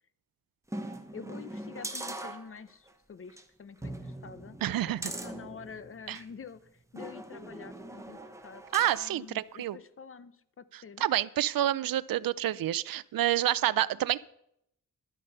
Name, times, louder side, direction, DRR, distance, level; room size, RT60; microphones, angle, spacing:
sound 1, 0.7-2.9 3.3-3.4 3.8-6.3 7.0-9.2 9.6-9.7, right 1 dB, 10° right, 1.0 m, -41 dB
voice 1, 1.1-4.6 4.9-8.6 8.9-11.1, left 6 dB, 40° left, 15 dB, 0.6 m, -47 dB
voice 2, 4.6-5.0 6.1-6.2 8.7-9.8 10.7-14.2, right 12 dB, 85° right, 19 dB, 0.5 m, -28 dB
11.5 x 8.6 x 5.5 m, 0.75 s
wide cardioid pair, 125°, 33 cm